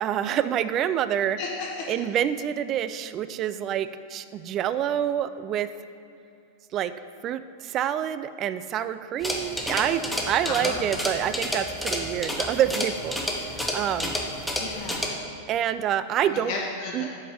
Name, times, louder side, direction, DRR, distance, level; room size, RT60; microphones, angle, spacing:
voice 1, 0.0-1.4 1.9-5.7 6.7-6.9 7.2-14.2 15.5-16.5 16.9-17.1, right 10 dB, 35° right, 13 dB, 0.3 m, -27 dB
voice 2, 1.4-2.0 10.5-10.9 14.6-15.2 16.3-17.0, left 4 dB, 45° left, -2 dB, 1.0 m, -34 dB
sound 1, 9.2-15.1, equal, ahead, 0.9 m, -30 dB
7.7 x 5.1 x 5.1 m, 2.6 s
figure-of-eight pair, 90°, 0 cm